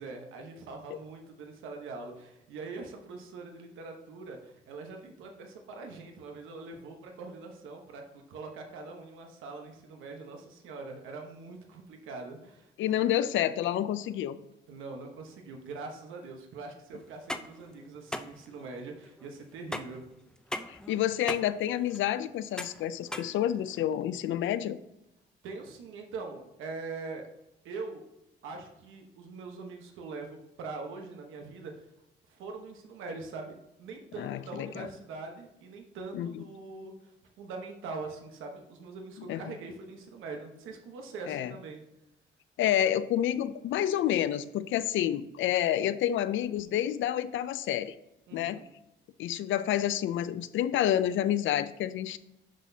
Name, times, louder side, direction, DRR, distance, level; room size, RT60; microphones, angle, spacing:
voice 1, 0.0-12.7 14.7-20.1 25.4-27.3 27.6-28.0 28.4-31.7 32.3-37.1 37.4-41.8 48.3-48.6, right 3 dB, 85° right, 3 dB, 1.1 m, -43 dB
voice 2, 12.8-14.4 20.7-24.8 34.2-34.9 36.1-36.4 39.2-39.4 41.3-41.5 42.6-48.0 48.3-48.6 49.2-52.2, left 11 dB, 75° left, 14 dB, 0.5 m, -29 dB
sound 1, 17.1-24.0, left 1 dB, 5° left, 0.5 m, -40 dB
11.5 x 4.1 x 2.7 m, 0.90 s
cardioid pair, 90°, 20 cm